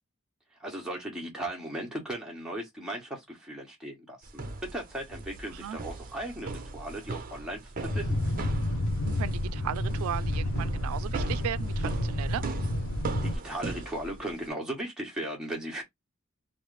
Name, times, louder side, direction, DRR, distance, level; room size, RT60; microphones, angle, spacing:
voice 1, 0.6-7.6 7.9-8.3 13.2-15.8, right 1 dB, 5° right, 1.1 m, -37 dB
sound 1, 4.2-14.5, right 2 dB, 40° right, 0.6 m, -39 dB
sound 2, 7.8-13.4, left 1 dB, 85° left, 0.7 m, -30 dB
voice 2, 9.0-12.4, right 9 dB, 85° right, 0.3 m, -36 dB
3.1 x 2.5 x 3.2 m
head